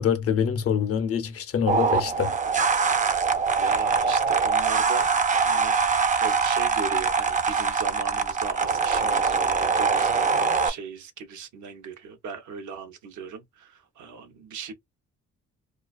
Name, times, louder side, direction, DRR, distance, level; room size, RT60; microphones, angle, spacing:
voice 1, 0.0-2.3, left 7 dB, 50° left, 0.6 m, -25 dB
sound 1, 1.7-10.7, right 5 dB, 25° right, 0.5 m, -23 dB
voice 2, 3.5-5.1 5.4-5.8 6.2-14.7, right 5 dB, 70° right, 0.7 m, -37 dB
2.3 x 2.3 x 2.2 m
cardioid pair, 90°, 30 cm